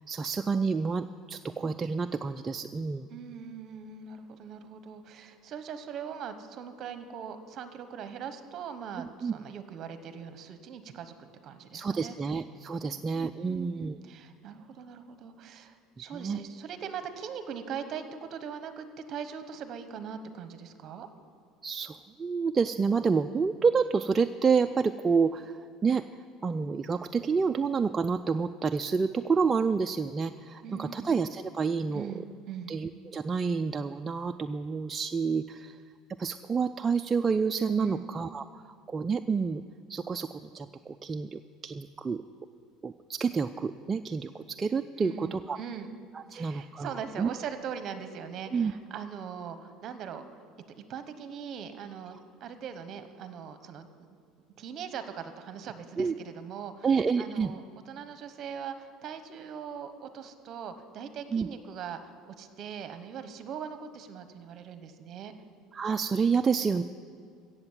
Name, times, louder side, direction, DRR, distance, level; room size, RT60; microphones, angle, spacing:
voice 1, 0.1-3.1 9.0-9.3 11.7-14.0 16.1-16.4 21.6-26.0 26.4-32.1 32.7-35.8 36.2-39.6 39.9-42.2 42.8-45.6 46.1-46.9 47.2-47.3 48.5-48.7 56.0-56.1 56.8-57.5 61.3-61.5 65.7-66.8, right 5 dB, 20° right, 7 dB, 0.3 m, -29 dB
voice 2, 3.1-12.2 12.8-21.1 30.6-31.1 31.9-32.7 37.7-38.1 45.0-45.9 46.3-50.4 50.8-54.1 54.6-56.9 57.2-65.3, right 7 dB, 40° right, 9 dB, 1.1 m, -41 dB
15.5 x 7.9 x 7.4 m, 2.3 s
cardioid pair, 155°, 0 cm